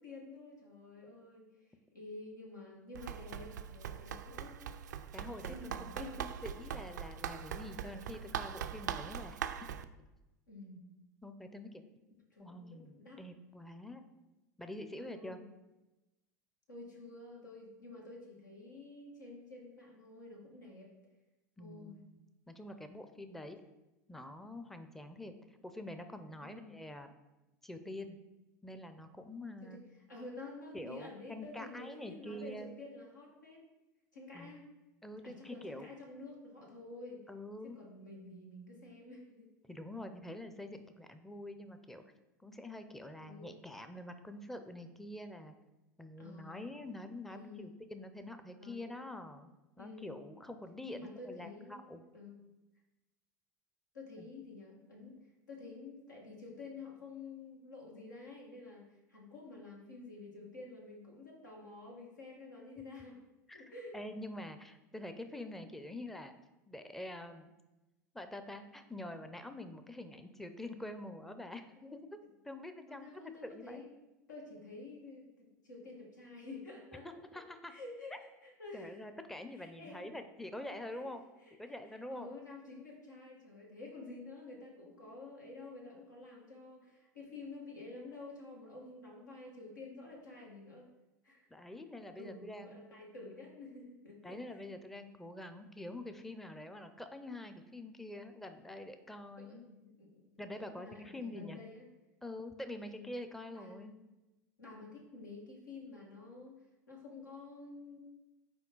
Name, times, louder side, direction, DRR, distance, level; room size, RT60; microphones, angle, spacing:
voice 1, 0.0-1.6 1.9-4.6 5.4-6.4 10.5-10.8 12.3-13.2 15.0-15.4 16.7-20.9 21.6-22.0 26.4-26.7 29.6-29.8 30.1-33.6 34.1-34.6 35.2-37.2 37.6-39.5 43.2-43.6 46.2-46.6 47.3-47.7 48.6-49.2 49.8-50.2 50.9-52.4 53.9-63.3 63.5-63.9 72.9-73.9 74.3-77.1 77.7-79.0 79.5-80.0 80.9-81.1 81.4-90.9 91.2-91.5 92.2-94.6 99.4-100.2 100.5-101.9 102.7-103.1 103.5-104.1 104.6-108.0, left 3 dB, 90° left, -2 dB, 1.7 m, -50 dB
Run, 2.9-9.9, right 9 dB, 80° right, 0.3 m, -42 dB
voice 2, 5.1-6.1 6.4-9.7 11.2-11.8 12.4-14.0 14.6-15.4 21.6-22.2 22.5-23.6 24.1-25.3 25.6-27.1 27.6-28.2 28.6-29.8 30.7-32.7 34.3-34.6 35.0-35.9 37.3-37.8 39.7-42.0 42.4-45.5 46.0-49.5 49.8-52.0 54.2-54.3 63.5-66.3 66.7-67.5 68.1-73.1 73.4-73.8 77.3-77.7 78.7-81.3 81.6-82.3 91.5-92.8 94.2-99.6 100.4-101.6 102.2-103.9, left 1 dB, 5° left, 8 dB, 0.5 m, -46 dB
5.9 x 4.4 x 3.8 m, 1.0 s
hypercardioid pair, 85°, 10 cm